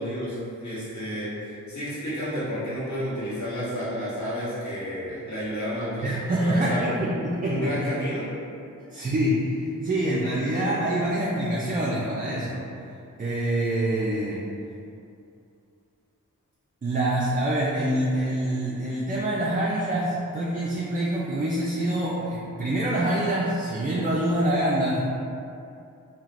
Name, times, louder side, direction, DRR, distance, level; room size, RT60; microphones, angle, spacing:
voice 1, 0.0-6.1 6.4-6.8 7.4-8.3, equal, 60° left, -10 dB, 1.3 m, -31 dB
voice 2, 6.0-7.7 8.9-12.6 13.2-14.4 16.8-25.0, right 1 dB, 25° right, -7 dB, 0.3 m, -25 dB
3.2 x 2.7 x 2.5 m, 2.6 s
wide cardioid pair, 100°, 33 cm